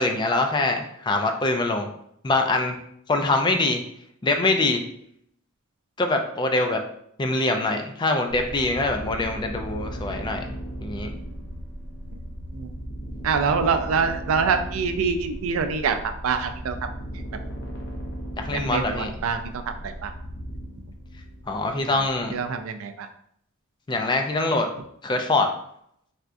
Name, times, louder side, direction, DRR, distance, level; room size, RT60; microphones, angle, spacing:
voice 1, 0.0-1.9 2.2-2.8 3.1-3.8 4.2-4.8 6.0-6.8 7.2-10.5 10.8-11.1 18.4-19.1 21.5-22.4 23.9-24.7 25.0-25.5, left 2 dB, 20° left, 5 dB, 0.3 m, -24 dB
sound 1, 8.3-22.5, equal, 55° left, 0.7 m, -36 dB
voice 2, 13.2-16.8 18.7-20.1 22.3-23.1, right 5 dB, 70° right, 7 dB, 0.4 m, -25 dB
4.2 x 2.3 x 2.5 m, 0.70 s
head